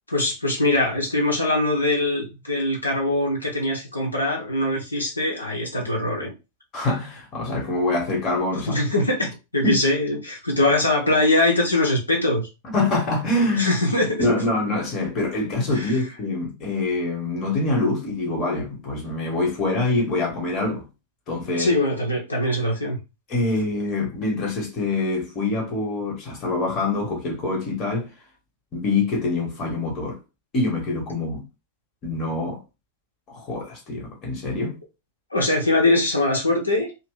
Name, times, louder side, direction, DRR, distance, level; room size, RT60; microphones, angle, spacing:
voice 1, 0.1-6.3 8.6-12.5 13.6-14.3 15.7-16.0 21.6-23.0 35.3-36.9, left 2 dB, 80° left, 0.8 m, -22 dB
voice 2, 6.7-8.8 9.6-9.8 12.6-13.8 14.2-20.8 21.3-21.7 23.3-28.1 28.7-30.2 30.5-31.4 32.0-32.6 33.3-34.8, left 2 dB, 30° left, 1.2 m, -25 dB
2.7 x 2.0 x 3.7 m
figure-of-eight pair, 90°, 0 cm